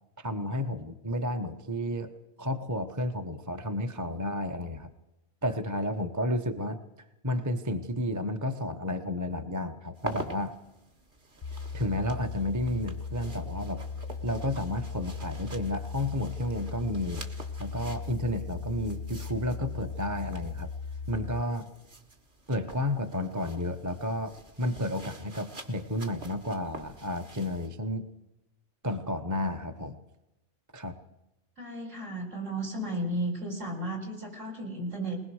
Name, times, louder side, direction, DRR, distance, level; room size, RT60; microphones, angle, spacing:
voice 1, 0.2-2.1 2.4-4.9 5.4-6.8 7.2-10.6 11.7-13.8 14.2-17.2 17.6-20.7 21.1-21.7 22.5-28.1 28.8-30.0 30.7-31.0, left 1 dB, 15° right, 7 dB, 0.9 m, -32 dB
sound 1, 10.0-27.7, right 2 dB, 35° right, 1.8 m, -47 dB
sound 2, 11.4-21.4, left 5 dB, 35° left, 0.7 m, -38 dB
voice 2, 31.6-35.2, right 1 dB, 60° right, 0 dB, 4.7 m, -34 dB
21.0 x 20.0 x 6.4 m, 0.94 s
omnidirectional pair, 1.5 m